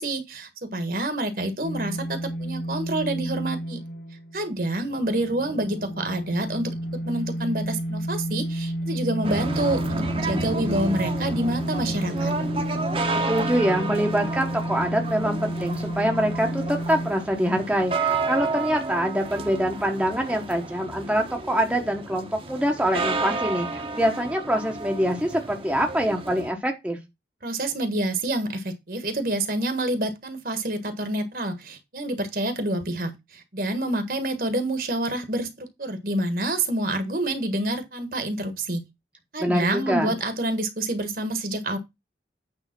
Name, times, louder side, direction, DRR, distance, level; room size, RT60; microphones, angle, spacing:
voice 1, 0.0-3.8 4.3-6.7 7.0-12.4 27.4-38.9 39.3-41.8, right 1 dB, 50° right, 1.5 m, -27 dB
sound 1, 1.6-17.1, right 1 dB, 80° left, 1.1 m, -31 dB
sound 2, 9.2-26.5, right 3 dB, 30° right, 1.1 m, -31 dB
voice 2, 13.3-27.0 39.4-40.1, equal, 5° right, 1.1 m, -25 dB
9.1 x 3.5 x 5.9 m
head